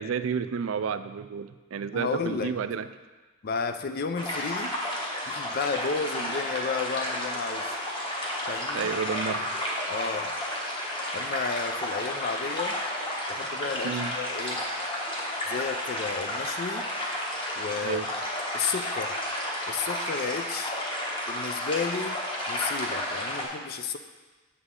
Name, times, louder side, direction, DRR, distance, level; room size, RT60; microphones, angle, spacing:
voice 1, 0.0-2.9 6.2-6.3 8.7-9.5 13.8-14.1 17.8-18.1, right 6 dB, 70° right, 12 dB, 0.4 m, -31 dB
voice 2, 1.9-2.6 3.4-4.7 5.3-7.7 8.5-8.9 9.9-10.3 11.1-12.8 13.3-14.6 15.5-16.9 17.6-18.0 18.5-19.1 19.7-20.8 21.3-22.2 22.5-24.0, left 5 dB, 45° left, 9 dB, 0.4 m, -32 dB
sound 1, 4.2-23.5, left 1 dB, 25° left, 1.2 m, -32 dB
8.0 x 7.0 x 3.7 m, 1.3 s
head